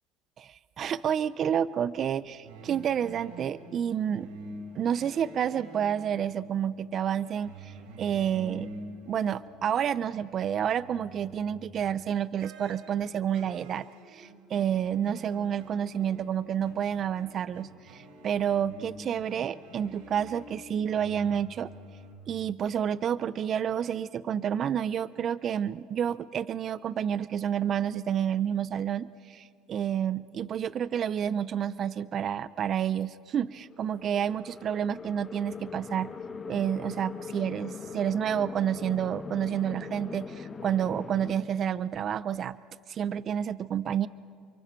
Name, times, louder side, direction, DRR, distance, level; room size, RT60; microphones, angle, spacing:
voice 1, 0.4-4.3 4.8-8.7 9.1-21.7 22.3-36.1 36.5-42.6 42.9-44.1, right 9 dB, 45° right, 17 dB, 0.5 m, -29 dB
sound 1, 2.4-9.9 10.3-11.8 12.4-22.1, right 1 dB, 85° right, 3.9 m, -47 dB
sound 2, 33.7-41.3, left 5 dB, 25° left, 1.5 m, -41 dB
29.0 x 24.0 x 4.5 m, 2.2 s
supercardioid pair, 90°, 0 cm